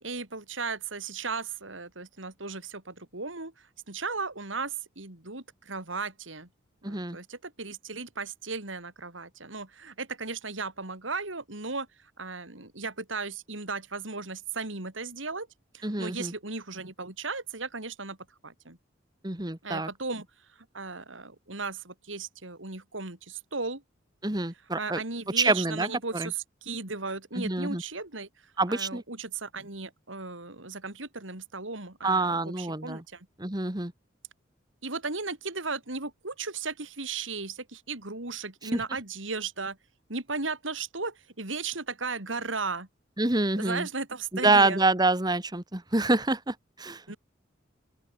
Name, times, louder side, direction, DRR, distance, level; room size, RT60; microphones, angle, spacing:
voice 1, 0.0-6.5 6.8-11.9 12.2-15.5 15.7-18.2 18.4-18.8 19.6-20.3 20.7-23.8 24.8-28.3 28.7-33.3 34.8-39.8 40.1-42.9 43.6-44.8 47.1-47.2, right 4 dB, 85° right, 4.0 m, -36 dB
voice 2, 6.8-7.2 15.8-16.3 19.2-19.9 24.2-25.0 25.4-25.9 26.1-26.3 27.4-27.8 28.6-29.0 32.0-33.0 33.4-33.9 38.7-38.8 43.2-43.9 44.3-47.0, right 2 dB, 20° right, 1.8 m, -26 dB
open air
head